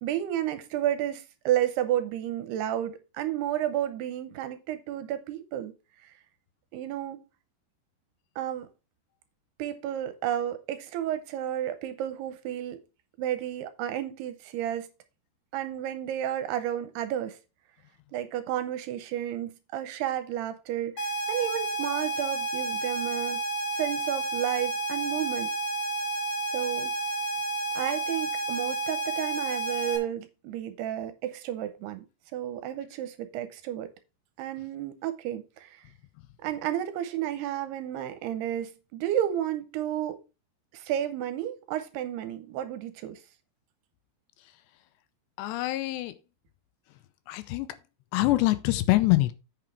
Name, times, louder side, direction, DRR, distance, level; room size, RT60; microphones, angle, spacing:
voice 1, 0.0-5.7 6.0-6.1 6.7-7.2 8.4-8.7 9.6-12.8 13.2-14.9 15.5-17.4 18.1-23.4 23.8-25.5 26.5-26.9 27.7-32.0 32.3-33.9 34.4-35.8 36.4-40.2 40.7-43.2, right 11 dB, 75° right, 2.6 m, -32 dB
sound 1, 21.0-30.0, right 2 dB, 45° left, 2.6 m, -31 dB
voice 2, 45.4-46.1 47.3-47.8 48.1-49.3, left 18 dB, 85° left, 2.8 m, -24 dB
8.8 x 5.9 x 4.8 m
omnidirectional pair, 5.1 m